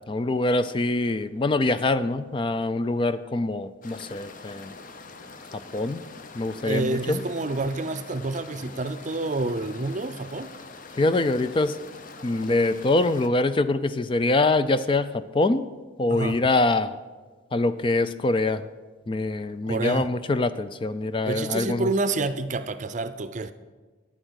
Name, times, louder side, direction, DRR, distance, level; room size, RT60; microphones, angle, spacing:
voice 1, 0.1-4.7 5.7-6.0 6.4-7.2 11.0-11.8 12.2-15.6 16.0-17.0 17.5-18.7 19.1-21.9, left 2 dB, 25° left, 0.3 m, -24 dB
sound 1, 3.8-13.3, left 3 dB, 40° left, 0.7 m, -44 dB
voice 2, 6.6-10.5 16.1-16.4 19.7-20.1 21.2-23.5, right 3 dB, 40° right, 0.6 m, -28 dB
11.5 x 9.0 x 6.3 m
head